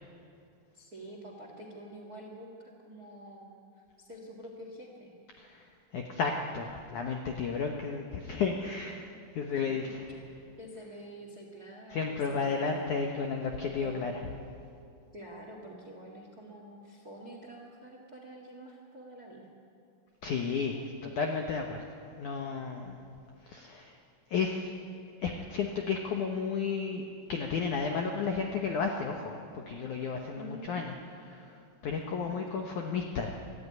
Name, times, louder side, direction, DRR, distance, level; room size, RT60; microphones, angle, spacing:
voice 1, 0.7-5.1 9.5-9.6 10.6-12.9 13.8-14.0 15.1-19.5 30.4-30.9 32.0-32.4, right 1 dB, 40° right, 2 dB, 1.4 m, -47 dB
voice 2, 5.4-5.7 5.9-10.2 11.9-14.2 20.2-23.0 23.4-24.0 24.3-24.7 25.2-30.9 31.2-33.3, left 5 dB, 70° left, 3 dB, 1.8 m, -33 dB
24.0 x 14.0 x 9.6 m, 2.5 s
omnidirectional pair, 5.1 m